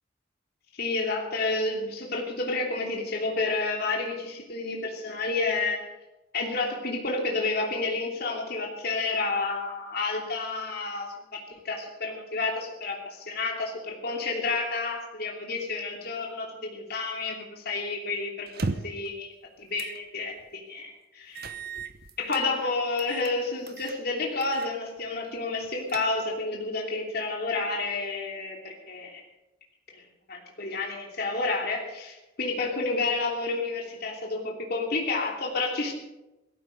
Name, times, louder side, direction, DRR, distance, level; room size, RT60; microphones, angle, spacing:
voice 1, 0.7-5.8 6.3-21.5 22.2-29.2 29.9-30.0 30.3-35.9, left 3 dB, 55° left, 0 dB, 3.0 m, -30 dB
sound 1, 18.5-19.1 19.8-20.0 20.4-20.5 21.4-22.5 23.0-23.3 23.7-24.0 24.4-24.7 25.0-25.1 25.6-26.4, right 3 dB, 55° right, 0.9 m, -36 dB
17.0 x 14.5 x 5.3 m, 1.0 s
head